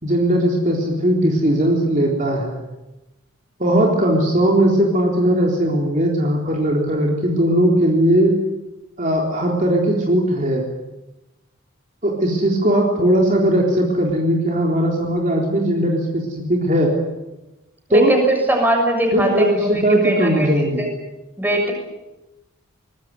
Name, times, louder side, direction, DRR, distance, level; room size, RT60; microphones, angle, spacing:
voice 1, 0.0-2.6 3.6-8.4 9.0-10.6 12.0-16.9 17.9-18.1 19.1-20.8, right 1 dB, 35° right, -1 dB, 3.9 m, -18 dB
voice 2, 17.9-18.2 18.5-20.9 21.4-21.7, right 1 dB, 10° right, 3 dB, 6.8 m, -21 dB
24.5 x 21.0 x 9.8 m, 1.0 s
head